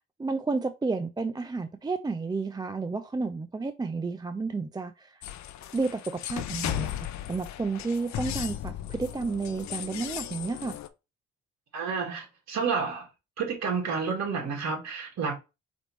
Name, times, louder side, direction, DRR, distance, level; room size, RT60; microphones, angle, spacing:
voice 1, 0.2-5.2 5.7-7.0 7.3-10.8, right 4 dB, 15° right, 0.3 m, -31 dB
sound 1, 5.2-10.9, left 11 dB, 65° left, 0.6 m, -36 dB
voice 2, 11.7-13.1 13.4-15.3, right 5 dB, 60° right, 2.0 m, -30 dB
5.0 x 3.4 x 3.1 m
cardioid pair, 90°, 30 cm